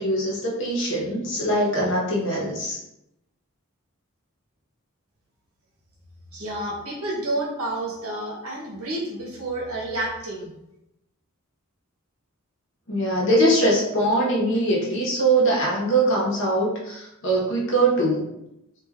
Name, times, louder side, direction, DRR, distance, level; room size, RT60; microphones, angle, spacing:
voice 1, 0.0-2.8 12.9-18.3, right 1 dB, 60° left, -4 dB, 0.9 m, -22 dB
voice 2, 6.3-10.5, right 1 dB, 80° right, -2 dB, 0.9 m, -30 dB
2.4 x 2.3 x 3.4 m, 0.85 s
head